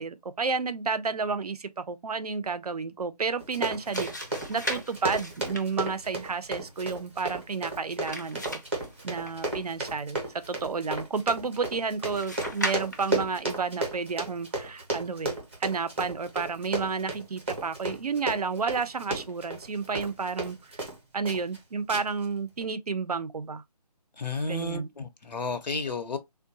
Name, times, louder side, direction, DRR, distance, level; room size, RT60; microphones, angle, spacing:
voice 1, 0.0-4.1 4.5-8.6 9.0-20.8 21.1-23.6 24.4-24.9, right 5 dB, 70° right, 0.5 m, -31 dB
Run, 3.4-21.0 21.2-21.6 21.9-22.3 22.6-22.7, right 2 dB, 15° right, 0.7 m, -34 dB
sound 1, 3.6-9.9 12.1-13.3, left 1 dB, 30° left, 0.4 m, -39 dB
voice 2, 24.2-26.2, left 3 dB, 85° left, 0.8 m, -32 dB
3.6 x 2.2 x 2.7 m
figure-of-eight pair, 170°, 21 cm